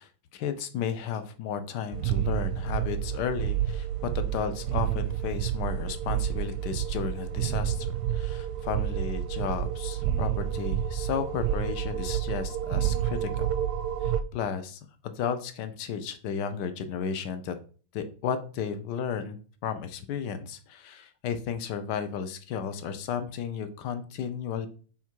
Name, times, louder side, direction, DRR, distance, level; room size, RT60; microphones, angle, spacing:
voice 1, 0.0-13.5 14.0-17.6 17.9-19.4 19.6-24.7, left 7 dB, 65° left, 10 dB, 1.2 m, -33 dB
sound 1, 1.9-14.2, right 11 dB, 85° right, 1.5 m, -29 dB
5.8 x 4.4 x 4.5 m, 0.39 s
omnidirectional pair, 2.4 m